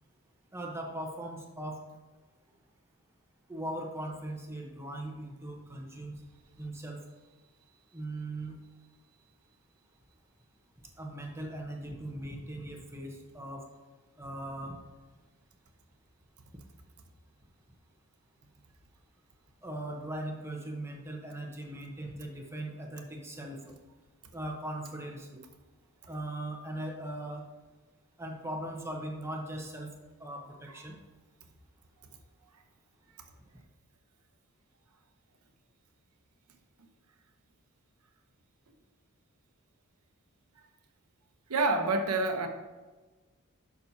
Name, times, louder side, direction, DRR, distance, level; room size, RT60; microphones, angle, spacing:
voice 1, 0.5-1.8 3.5-6.2 6.6-7.0 7.9-8.6 11.0-13.6 14.2-14.8 19.6-23.7 24.3-25.4 26.1-27.4 28.2-29.9 30.2-31.0, right 1 dB, 10° right, 1 dB, 1.0 m, -39 dB
voice 2, 41.5-42.5, right 3 dB, 85° right, 6 dB, 1.0 m, -28 dB
11.0 x 6.0 x 2.8 m, 1.2 s
head